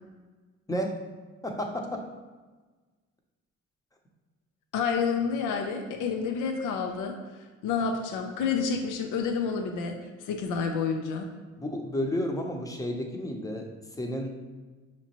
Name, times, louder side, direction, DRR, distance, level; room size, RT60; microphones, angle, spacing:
voice 1, 1.4-2.0 11.6-13.7 14.0-14.3, equal, 10° left, 1 dB, 0.7 m, -31 dB
voice 2, 4.7-7.1 7.6-11.3, left 5 dB, 90° left, 4 dB, 0.5 m, -29 dB
5.8 x 3.0 x 2.9 m, 1.3 s
cardioid pair, 90°, 30 cm